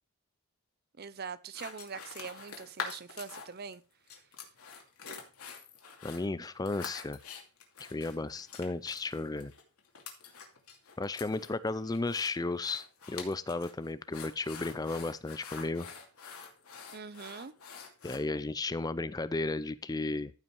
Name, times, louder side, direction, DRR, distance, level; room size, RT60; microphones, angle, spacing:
voice 1, 1.0-3.8 16.9-17.5, right 5 dB, 45° right, 0.6 m, -43 dB
sound 1, 1.5-3.7 4.1-18.2, left 5 dB, 90° left, 2.6 m, -46 dB
voice 2, 6.0-7.2 7.9-9.5 11.0-15.9 18.0-20.3, left 3 dB, 15° left, 0.4 m, -34 dB
14.0 x 5.5 x 4.6 m
head